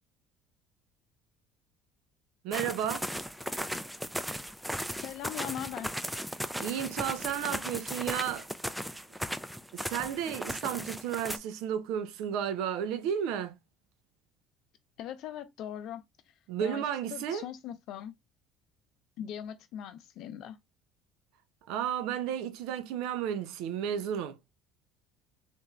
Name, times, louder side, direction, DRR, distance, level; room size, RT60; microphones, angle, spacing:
voice 1, 2.4-3.1 6.6-8.5 9.7-13.6 16.5-17.5 21.7-24.4, right 9 dB, 75° right, 0.4 m, -33 dB
sound 1, 2.5-11.4, equal, 5° right, 0.4 m, -37 dB
voice 2, 5.0-5.9 15.0-16.0 16.6-18.1 19.2-20.6, left 10 dB, 65° left, 0.6 m, -40 dB
3.0 x 2.5 x 2.3 m
hypercardioid pair, 70°, 0 cm